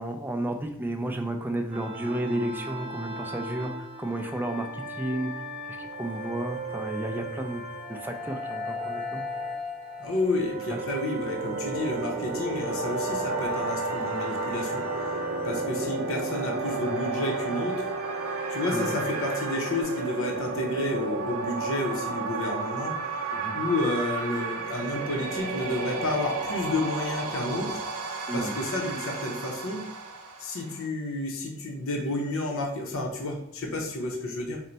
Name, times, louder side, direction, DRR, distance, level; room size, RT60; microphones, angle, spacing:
voice 1, 0.0-5.3 5.8-7.6 7.9-9.2 10.7-10.8 18.7-19.0 23.3-23.6 28.3-28.5, right 1 dB, 10° right, 4 dB, 0.3 m, -32 dB
sound 1, 1.7-19.8, right 2 dB, 30° right, 0.7 m, -35 dB
voice 2, 10.0-14.8 15.4-17.8 18.5-23.0 23.5-27.8 28.3-29.9 30.4-34.6, left 2 dB, 65° left, 0 dB, 0.7 m, -30 dB
sound 2, 11.0-30.9, right 4 dB, 65° right, 0.6 m, -33 dB
4.3 x 2.1 x 3.9 m, 0.78 s
head